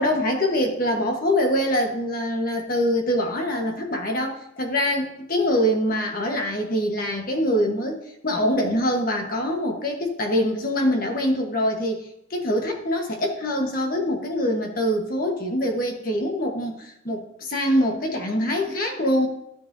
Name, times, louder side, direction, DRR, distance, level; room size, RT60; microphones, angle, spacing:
voice 1, 0.0-12.0 12.3-19.3, equal, 50° left, 2 dB, 1.3 m, -24 dB
14.0 x 7.4 x 2.7 m, 0.79 s
head